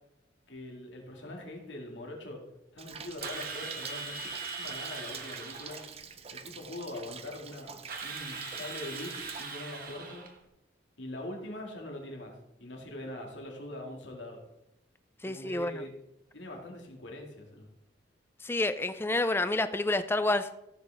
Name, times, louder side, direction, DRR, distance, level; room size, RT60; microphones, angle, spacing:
voice 1, 0.5-2.4 2.7-4.3 4.6-5.8 6.3-10.3 11.0-14.4 15.2-15.9 16.3-17.7, left 1 dB, 80° left, 1 dB, 2.2 m, -42 dB
Rain, 2.8-9.4, right 6 dB, 35° right, 0.6 m, -46 dB
Drill, 3.2-5.9 7.9-10.4, right 4 dB, 50° right, 1.3 m, -40 dB
voice 2, 15.2-15.8 18.4-20.7, left 2 dB, 10° left, 11 dB, 0.4 m, -29 dB
14.5 x 7.7 x 3.5 m, 0.89 s
head